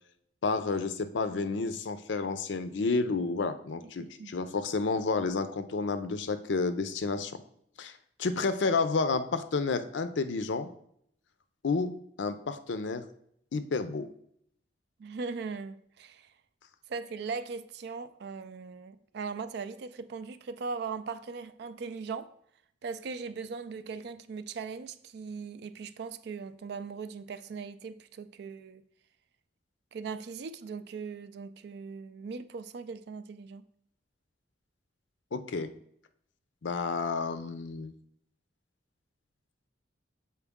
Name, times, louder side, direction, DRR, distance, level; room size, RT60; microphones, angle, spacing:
voice 1, 0.4-7.3 7.8-7.9 8.2-10.7 11.6-13.0 13.5-14.1 35.3-35.7 36.6-37.9, left 4 dB, 75° left, 0.5 m, -30 dB
voice 2, 3.8-4.3 15.0-16.3 16.9-22.3 22.8-28.8 29.9-33.6, right 5 dB, 60° right, 0.3 m, -39 dB
7.0 x 4.5 x 3.6 m
head